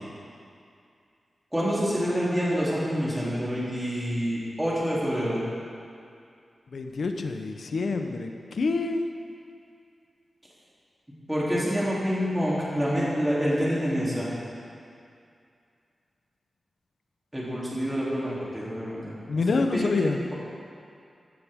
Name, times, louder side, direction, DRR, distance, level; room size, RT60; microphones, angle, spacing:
voice 1, 1.5-5.4 11.3-14.3 17.3-19.1 19.7-19.9, equal, 5° right, -8 dB, 3.4 m, -27 dB
voice 2, 6.7-9.0 19.3-20.2, left 3 dB, 65° left, 5 dB, 0.9 m, -27 dB
15.0 x 13.5 x 3.7 m, 2.4 s
wide cardioid pair, 165°, 0 cm